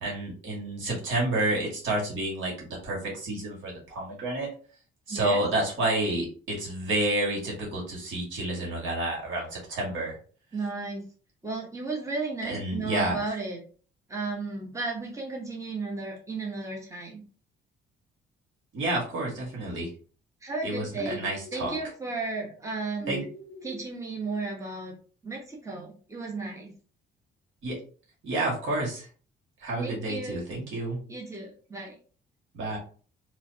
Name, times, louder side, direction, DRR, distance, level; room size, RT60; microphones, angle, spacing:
voice 1, 0.0-4.5 5.1-10.2 12.5-13.2 18.7-19.9 20.6-21.7 23.1-23.2 27.6-27.8 28.2-29.1 29.6-31.0 32.5-32.8, right 1 dB, 80° right, -2 dB, 1.8 m, -29 dB
voice 2, 5.1-5.4 10.5-11.0 11.4-13.6 14.1-17.2 20.4-23.2 23.6-24.9 25.2-26.7 29.8-30.4 31.1-32.0, right 3 dB, 15° right, -1 dB, 1.1 m, -34 dB
sound 1, 21.0-21.9 23.0-23.9, right 2 dB, 45° right, 1.1 m, -40 dB
3.2 x 3.1 x 2.8 m, 0.40 s
cardioid pair, 90°, 20 cm